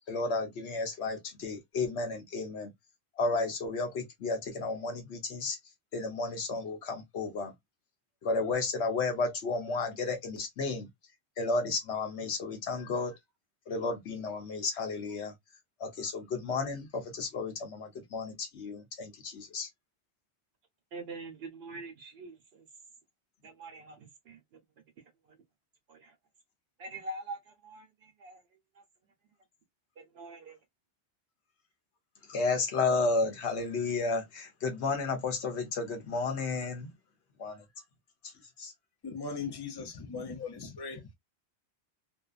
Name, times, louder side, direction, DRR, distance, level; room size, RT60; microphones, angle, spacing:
voice 1, 0.1-2.7 3.2-5.6 5.9-7.5 8.2-10.9 11.4-13.2 13.7-15.3 15.8-19.7 32.3-36.9 37.4-37.6 38.2-38.3 38.6-38.7, left 3 dB, 75° left, 1.1 m, -32 dB
voice 2, 20.9-22.6 23.4-24.4 25.9-26.1 26.8-28.4 28.7-28.8 30.0-30.6, right 2 dB, 70° right, 0.9 m, -44 dB
voice 3, 39.0-41.1, left 5 dB, 30° left, 0.4 m, -39 dB
2.6 x 2.3 x 2.3 m
omnidirectional pair, 1.2 m